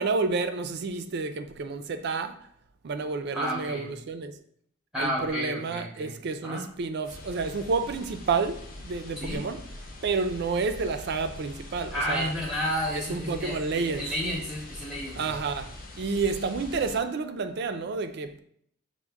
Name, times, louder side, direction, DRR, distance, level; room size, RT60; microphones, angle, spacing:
voice 1, 0.0-2.4 2.8-4.3 5.0-9.6 10.0-12.3 12.9-14.1 15.2-18.4, right 4 dB, 55° right, 0.4 m, -30 dB
voice 2, 3.3-3.9 4.9-6.1 6.4-6.7 9.2-9.4 11.9-15.4, equal, 5° right, 0.7 m, -31 dB
sound 1, 7.1-17.0, left 1 dB, 45° left, 0.8 m, -43 dB
6.2 x 2.1 x 3.4 m
head